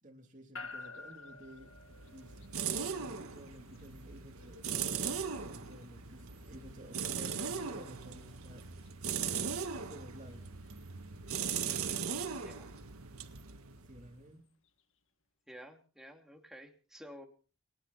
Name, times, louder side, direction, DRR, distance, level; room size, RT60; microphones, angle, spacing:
voice 1, 0.0-1.7 2.1-2.4 2.8-8.6 9.3-10.5 13.8-14.4, right 1 dB, 35° right, 3 dB, 3.1 m, -52 dB
sound 1, 0.6-14.8, left 3 dB, 65° left, 2.0 m, -56 dB
sound 2, 1.6-14.2, right 6 dB, 85° right, 1.7 m, -39 dB
voice 2, 11.7-12.0 12.4-12.7 15.5-17.3, equal, ahead, 3 dB, 2.6 m, -52 dB
30.0 x 10.0 x 4.2 m, 0.39 s
head